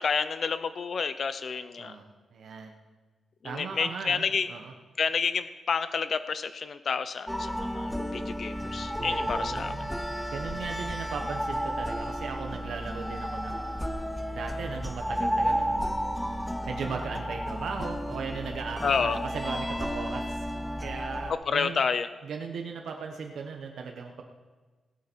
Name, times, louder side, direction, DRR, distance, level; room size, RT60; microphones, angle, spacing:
voice 1, 0.0-1.9 3.4-4.5 5.0-9.7 18.8-19.2 21.5-22.1, left 5 dB, 50° left, 12 dB, 0.5 m, -29 dB
voice 2, 1.8-2.8 3.4-4.7 9.0-10.0 10.3-14.0 14.3-16.0 16.7-20.5 20.8-21.8 22.2-24.2, right 5 dB, 75° right, 2 dB, 1.1 m, -37 dB
sound 1, 7.3-21.3, equal, ahead, 0.7 m, -32 dB
19.5 x 8.7 x 4.6 m, 1.3 s
wide cardioid pair, 125°, 0 cm